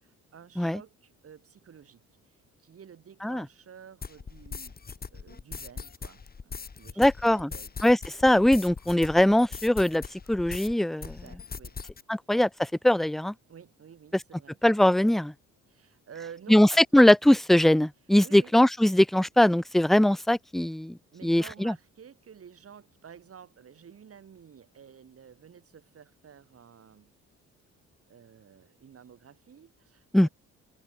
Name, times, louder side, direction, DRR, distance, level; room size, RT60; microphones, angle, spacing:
voice 1, 0.0-4.8 5.1-7.7 11.0-11.8 13.5-14.6 15.7-16.8 18.2-18.5 21.1-27.1 28.1-30.3, right 7 dB, 50° right, 4.0 m, -51 dB
sound 1, 4.0-10.7 11.0-12.0, left 5 dB, 30° left, 1.9 m, -40 dB
voice 2, 7.0-7.5 7.8-10.0 10.3-11.1 12.1-13.3 14.6-15.3 16.5-16.7 16.9-21.7 30.1-30.3, left 1 dB, ahead, 0.5 m, -21 dB
cardioid pair, 90°, 30 cm